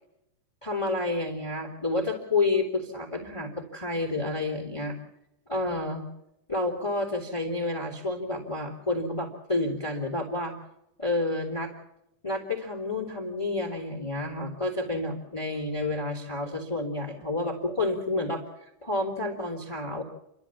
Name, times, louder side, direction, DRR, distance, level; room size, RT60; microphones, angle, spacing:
voice 1, 0.6-5.0 5.5-6.0 6.5-10.5 11.0-11.7 12.2-20.0, left 2 dB, 10° left, 1 dB, 2.7 m, -30 dB
30.0 x 13.0 x 7.2 m, 0.83 s
omnidirectional pair, 3.5 m